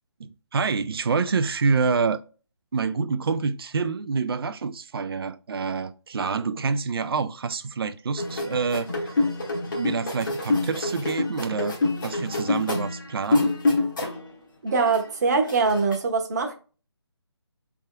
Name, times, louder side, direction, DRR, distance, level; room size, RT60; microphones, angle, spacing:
voice 1, 0.2-2.2 2.7-9.1 9.7-11.8 12.0-13.5, right 5 dB, 55° right, 0.4 m, -27 dB
sound 1, 8.2-14.3 14.7-16.0, left 2 dB, 45° left, 1.1 m, -27 dB
voice 2, 14.6-16.5, right 4 dB, 40° right, 0.9 m, -23 dB
6.1 x 3.5 x 2.2 m
figure-of-eight pair, 150°, 14 cm